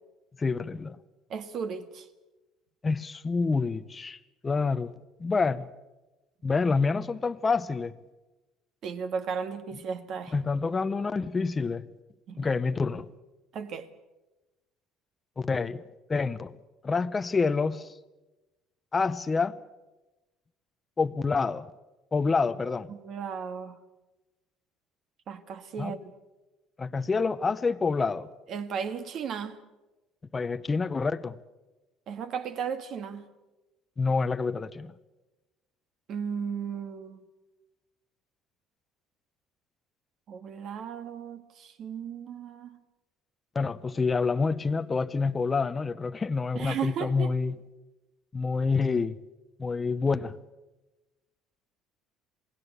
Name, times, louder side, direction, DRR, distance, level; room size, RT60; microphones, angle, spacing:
voice 1, 0.4-1.0 2.8-4.9 5.2-5.7 6.4-7.9 10.3-11.9 12.4-13.1 15.4-15.8 16.1-16.5 16.8-18.0 18.9-19.6 21.0-21.7 22.1-22.9 25.8-26.0 26.8-28.3 30.3-31.4 34.0-34.9 43.5-47.6 48.3-49.2 49.6-50.4, left 4 dB, 20° left, 0.7 m, -27 dB
voice 2, 1.3-2.1 8.8-10.3 12.3-12.5 13.5-13.9 22.9-23.8 25.3-26.1 28.5-29.6 32.1-33.3 36.1-37.2 40.3-42.8 46.5-47.3, right 7 dB, 50° right, 1.7 m, -35 dB
27.5 x 18.0 x 8.2 m
cardioid pair, 135°, 0 cm